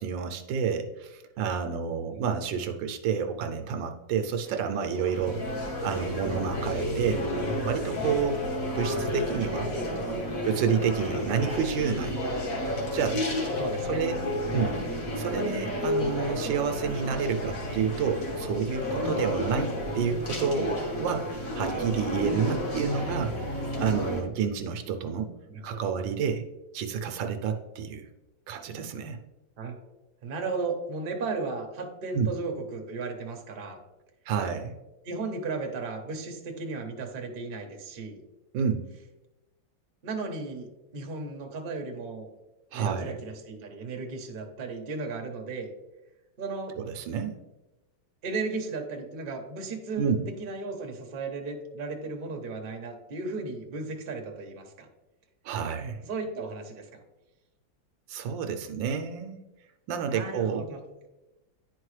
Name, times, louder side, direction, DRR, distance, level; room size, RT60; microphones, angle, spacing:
voice 1, 0.0-5.4 5.8-7.3 7.6-8.4 8.7-9.7 10.4-12.2 12.9-13.2 13.9-14.2 14.5-14.7 15.2-23.5 23.8-25.3 25.6-26.4 26.7-28.1 28.5-29.2 32.1-32.3 34.3-34.7 38.5-38.8 42.7-43.2 46.8-47.4 50.0-50.2 55.4-56.0 58.1-59.4 59.9-60.6, right 6 dB, 80° right, 7 dB, 1.3 m, -29 dB
sound 1, 4.5-24.2, left 1 dB, 45° left, 1.6 m, -31 dB
voice 2, 9.7-10.4 11.2-11.6 13.6-14.0 19.5-19.6 25.5-25.9 29.6-29.7 30.2-33.8 35.0-38.2 40.0-42.3 42.7-45.7 46.4-46.8 48.2-50.1 50.4-54.9 56.0-57.0 60.1-60.8, right 3 dB, 40° right, 3 dB, 0.8 m, -35 dB
10.0 x 4.5 x 3.2 m, 1.0 s
omnidirectional pair, 2.1 m